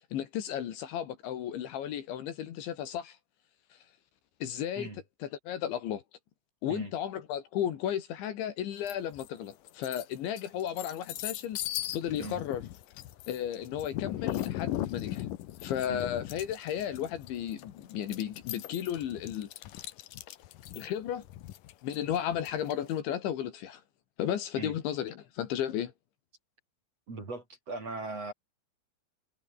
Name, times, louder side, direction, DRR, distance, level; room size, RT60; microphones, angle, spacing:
voice 1, 0.1-3.2 4.4-4.9 5.2-6.0 6.6-11.6 11.9-12.6 13.3-15.3 15.6-19.5 20.7-21.2 21.8-23.8 24.2-25.9, left 10 dB, 70° left, 4.3 m, -34 dB
sound 1, 8.9-9.3 9.7-22.9, left 14 dB, 85° left, 1.8 m, -38 dB
voice 2, 27.1-28.3, right 3 dB, 30° right, 6.9 m, -39 dB
omnidirectional pair, 5.6 m